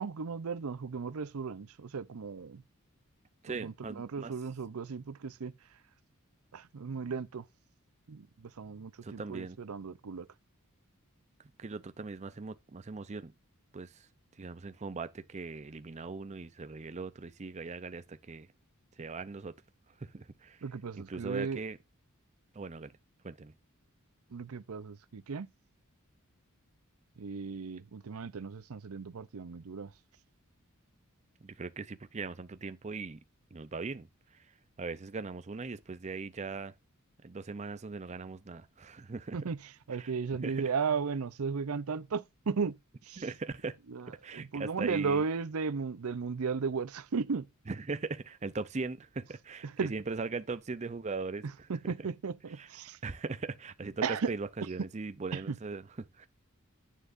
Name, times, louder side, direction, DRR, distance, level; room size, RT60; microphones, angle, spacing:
voice 1, 0.0-2.6 3.5-5.5 6.5-7.5 8.1-10.3 20.6-21.6 24.3-25.5 27.2-29.9 39.3-42.8 43.0-43.2 43.9-47.4 49.6-49.9 51.4-53.0 54.0-54.3 54.6-54.9 55.3-55.6, right 5 dB, 75° right, 0.6 m, -35 dB
voice 2, 3.4-4.3 9.0-9.6 11.6-13.3 13.7-14.1 14.4-18.5 19.0-19.6 20.0-20.6 21.0-21.8 22.5-22.9 23.2-23.5 31.4-33.2 33.5-34.5 34.8-36.7 37.2-39.4 40.0-40.1 40.4-40.6 43.2-43.8 44.2-45.2 47.7-51.7 52.6-52.7 53.0-56.3, right 4 dB, 30° right, 0.5 m, -39 dB
10.0 x 9.3 x 2.6 m
head